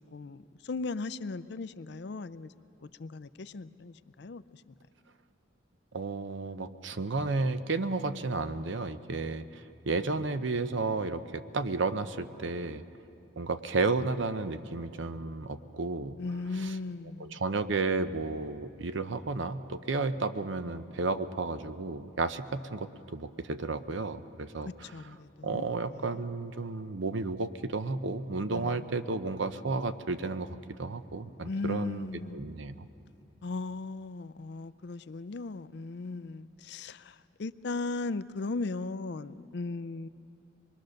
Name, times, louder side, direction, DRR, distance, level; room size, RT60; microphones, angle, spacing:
voice 1, 0.1-2.5 2.8-4.7 16.2-17.4 24.6-26.2 28.5-28.8 31.4-32.6 33.4-40.1, left 3 dB, 55° left, 15 dB, 0.5 m, -37 dB
voice 2, 5.9-12.8 13.4-16.2 16.6-16.7 17.2-24.7 25.4-32.9, right 3 dB, 65° right, 11 dB, 0.7 m, -32 dB
25.0 x 21.0 x 6.5 m, 2.8 s
head